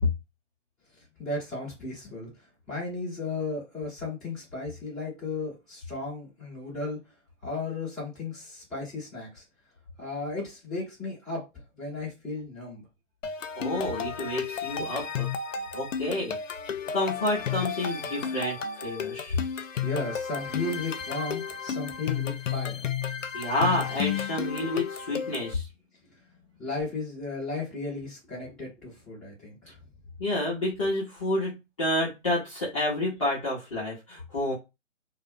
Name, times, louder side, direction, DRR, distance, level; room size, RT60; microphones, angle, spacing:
voice 1, 1.2-2.3 2.7-7.0 7.4-9.4 10.0-11.4 11.8-12.9 19.8-22.8 26.6-29.7, left 3 dB, ahead, 0.9 m, -35 dB
sound 1, 13.2-25.5, left 7 dB, 75° left, 0.5 m, -33 dB
voice 2, 13.6-15.3 15.7-16.3 16.9-18.6 18.8-19.4 23.3-25.7 30.2-34.5, left 1 dB, 25° left, 0.6 m, -29 dB
2.4 x 2.1 x 2.5 m
figure-of-eight pair, 150°, 38 cm